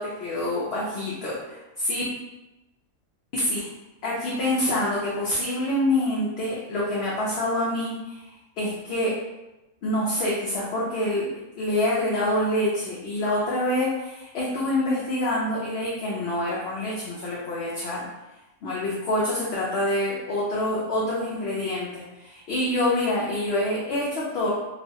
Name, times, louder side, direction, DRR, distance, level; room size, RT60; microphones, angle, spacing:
voice 1, 0.0-2.0 3.3-3.7 4.0-8.3 8.6-9.2 9.8-18.0 18.6-24.5, left 1 dB, 60° left, -6 dB, 0.7 m, -26 dB
3.0 x 2.1 x 2.7 m, 1.0 s
omnidirectional pair, 1.5 m